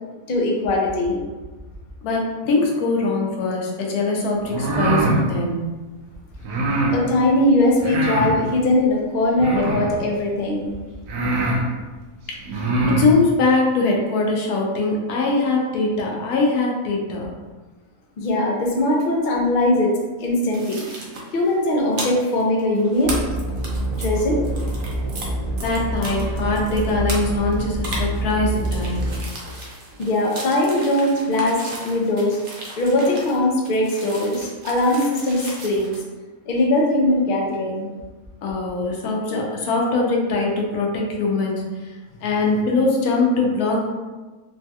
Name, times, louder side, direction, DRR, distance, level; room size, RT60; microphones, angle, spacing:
voice 1, 0.3-1.2 6.9-10.7 18.2-20.8 21.3-23.2 24.0-24.4 30.0-32.4 32.8-36.0 36.5-37.9, left 1 dB, 65° left, -2 dB, 0.5 m, -20 dB
voice 2, 2.0-5.7 12.9-17.3 25.6-29.0 38.4-41.9 42.2-43.9, left 3 dB, 85° left, -1 dB, 1.1 m, -22 dB
sound 1, 4.4-5.2 6.4-7.0 7.8-8.4 9.4-10.0 10.6-10.7 11.1-11.6 12.4-13.1, right 2 dB, 85° right, 1.1 m, -22 dB
sound 2, 20.5-25.3 25.6-36.0, right 2 dB, 60° right, 0.6 m, -36 dB
sound 3, 23.0-29.2, right 1 dB, 50° left, 0.9 m, -26 dB
3.2 x 2.7 x 2.2 m, 1.2 s
omnidirectional pair, 1.6 m